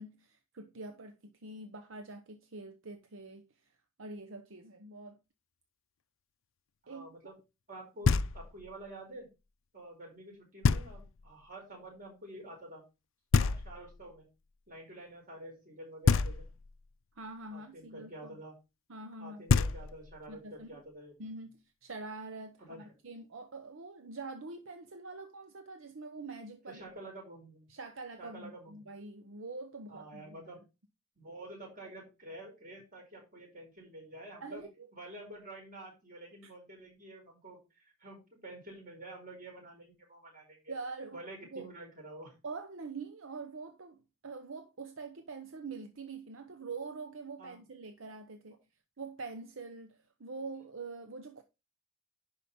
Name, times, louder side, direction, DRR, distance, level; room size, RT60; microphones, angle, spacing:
voice 1, 0.0-3.7 4.0-5.2 6.9-7.1 17.2-18.4 18.9-19.4 20.3-20.8 21.2-26.8 27.7-30.4 34.4-34.9 36.4-36.5 40.7-41.7 42.4-48.6 49.0-51.4, right 3 dB, 70° right, 0.9 m, -45 dB
voice 2, 6.8-7.3 7.7-9.3 9.7-12.8 13.3-14.3 14.7-16.5 17.5-18.5 19.2-21.1 22.6-22.9 26.7-27.7 28.2-28.8 29.9-30.6 31.2-34.7 34.9-40.7 41.1-42.3 47.4-47.6, right 1 dB, 40° right, 5.1 m, -49 dB
Knock, 8.0-8.7 10.6-11.3 13.3-14.1 16.0-16.8 19.1-19.2 19.5-20.3, left 4 dB, 70° left, 0.5 m, -28 dB
10.5 x 5.3 x 4.3 m
head